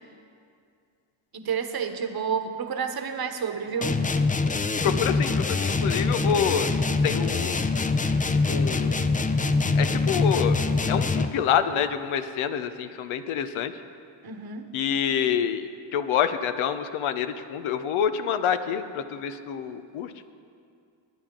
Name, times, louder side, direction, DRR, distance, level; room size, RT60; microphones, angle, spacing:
voice 1, 1.3-4.0 14.2-14.7, right 6 dB, 50° right, 7 dB, 1.2 m, -30 dB
sound 1, 3.8-11.5, left 3 dB, 15° left, 0.5 m, -24 dB
voice 2, 4.8-6.7 7.0-7.6 8.5-9.1 9.8-10.6 10.9-13.7 14.7-20.1, left 8 dB, 85° left, 10 dB, 0.8 m, -27 dB
20.0 x 9.2 x 3.8 m, 2.3 s
cardioid pair, 65°, 47 cm